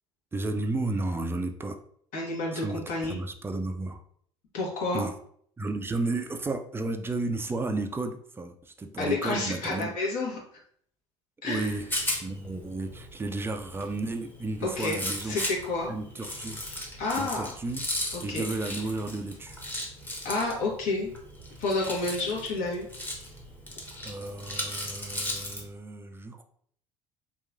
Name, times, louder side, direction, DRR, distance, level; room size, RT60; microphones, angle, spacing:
voice 1, 0.3-1.8 2.5-4.0 4.9-5.1 5.6-9.9 11.4-11.9 12.2-15.4 15.9-16.6 17.2-17.8 18.2-19.6 24.0-26.4, right 2 dB, 15° right, 6 dB, 0.4 m, -33 dB
voice 2, 2.1-3.2 4.5-5.0 9.0-10.6 11.4-11.7 14.6-15.9 17.0-17.5 18.1-18.5 20.2-21.1 21.6-22.9, left 2 dB, 55° left, -2 dB, 1.0 m, -30 dB
Rattle, 11.5-25.6, left 1 dB, 10° left, 0.9 m, -37 dB
2.9 x 2.3 x 2.5 m, 0.63 s
hypercardioid pair, 65°, 16 cm